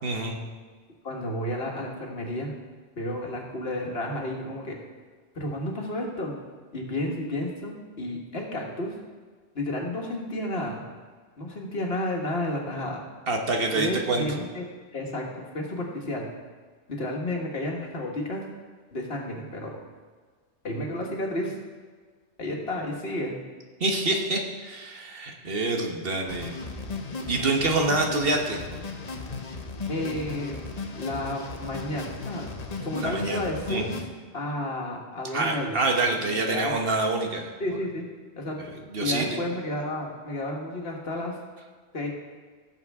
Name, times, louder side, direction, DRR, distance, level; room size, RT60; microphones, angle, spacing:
voice 1, 0.0-0.4 13.3-14.3 23.8-26.6 27.3-28.6 33.0-33.4 33.7-34.0 35.3-37.8 38.9-39.4, right 2 dB, 60° right, 2 dB, 1.4 m, -26 dB
voice 2, 1.0-2.5 3.0-4.8 5.4-6.4 6.7-9.0 9.6-10.8 11.4-13.0 13.7-14.6 14.9-16.3 16.9-18.5 18.9-19.8 20.6-21.5 22.4-23.4 29.9-32.5 32.8-34.1 34.3-35.8 36.2-36.7 37.6-38.1 38.4-38.6 39.0-41.4 41.9-42.1, left 1 dB, 65° left, 0 dB, 1.8 m, -31 dB
sound 1, 26.3-34.0, left 3 dB, 40° left, 0.9 m, -36 dB
16.5 x 7.2 x 3.6 m, 1.5 s
omnidirectional pair, 1.1 m